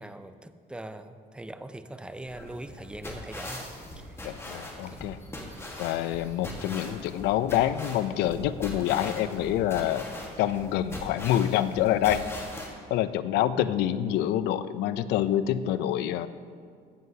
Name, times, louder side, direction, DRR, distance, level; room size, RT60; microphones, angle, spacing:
voice 1, 0.0-3.7 4.0-4.2 4.9-5.0 13.5-13.7, right 1 dB, 5° right, 10 dB, 0.4 m, -41 dB
sound 1, 2.3-12.7, left 1 dB, 15° left, 1.4 m, -41 dB
voice 2, 4.2-5.2 5.8-10.0 10.4-12.2 12.9-16.3, left 12 dB, 80° left, 14 dB, 0.4 m, -26 dB
15.5 x 7.6 x 2.8 m, 2.1 s
cardioid pair, 110°, 17 cm